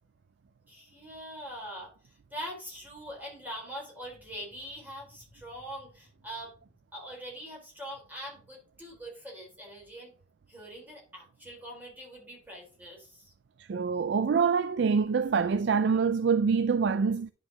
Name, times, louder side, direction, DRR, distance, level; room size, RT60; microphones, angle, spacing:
voice 1, 0.7-1.9 2.3-6.5 6.9-10.1 10.5-13.3, equal, 10° right, 3.8 m, -43 dB
voice 2, 13.6-17.3, right 5 dB, 65° right, 0.4 m, -25 dB
10.5 x 5.7 x 2.8 m
head